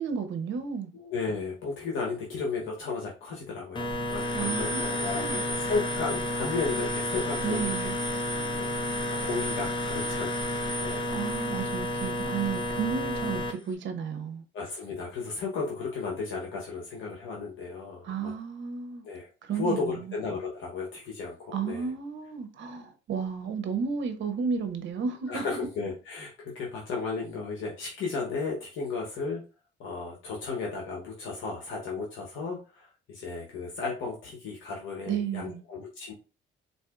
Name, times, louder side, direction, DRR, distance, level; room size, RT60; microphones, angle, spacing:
voice 1, 0.0-0.9 4.3-5.4 7.4-8.0 11.1-14.4 18.0-19.0 19.4-20.1 21.5-25.6 35.1-35.6, right 6 dB, 70° right, 0.7 m, -33 dB
voice 2, 0.9-7.7 8.3-10.3 10.8-11.4 14.5-18.3 19.0-21.9 25.3-29.4 29.8-36.1, left 4 dB, 80° left, 1.0 m, -34 dB
sound 1, 3.8-13.5, left 1 dB, 25° left, 0.7 m, -31 dB
4.1 x 2.6 x 2.4 m
cardioid pair, 90°, 20 cm